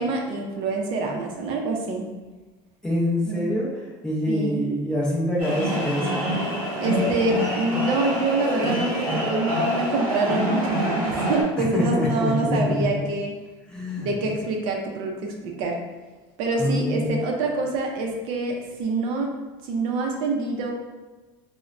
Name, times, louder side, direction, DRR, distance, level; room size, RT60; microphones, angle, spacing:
voice 1, 0.0-2.1 3.2-3.5 4.3-4.7 6.8-13.3 14.0-15.8 16.4-19.3 19.6-20.7, right 2 dB, 50° right, 1 dB, 0.4 m, -26 dB
voice 2, 2.8-3.7 4.0-6.1 11.7-12.8 13.7-14.1 16.6-17.1, left 1 dB, 5° left, -4 dB, 0.5 m, -25 dB
sound 1, 5.4-11.4, equal, 20° right, 0.9 m, -26 dB
4.1 x 2.0 x 2.4 m, 1.2 s
cardioid pair, 175°, 11 cm